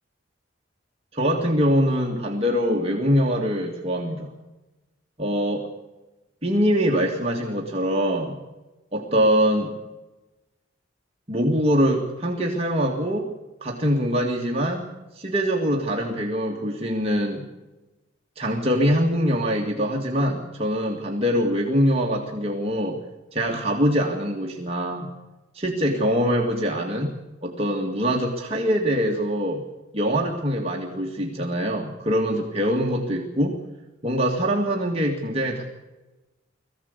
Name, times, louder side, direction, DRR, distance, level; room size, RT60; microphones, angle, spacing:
voice 1, 1.1-4.3 5.2-5.7 6.4-8.4 8.9-9.8 11.3-13.3 13.6-14.9 15.2-17.5 18.4-23.0 23.3-25.1 25.5-27.1 27.4-29.6 29.9-33.6 34.0-35.6, equal, 30° right, -1 dB, 2.2 m, -23 dB
22.0 x 15.5 x 8.3 m, 1.1 s
head